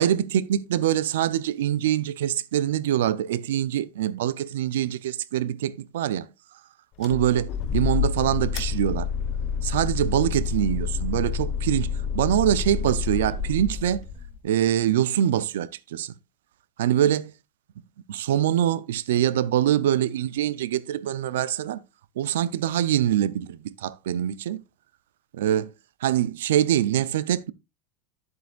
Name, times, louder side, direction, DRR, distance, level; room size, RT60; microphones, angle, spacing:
voice 1, 0.0-6.3 7.0-9.1 9.6-14.1 14.4-16.2 16.8-17.2 18.1-21.8 22.2-24.6 25.3-25.7 26.0-27.5, right 11 dB, 85° right, 0.6 m, -24 dB
sound 1, 7.0-14.4, left 6 dB, 35° left, 0.9 m, -28 dB
9.5 x 7.9 x 2.5 m
supercardioid pair, 175°, 0 cm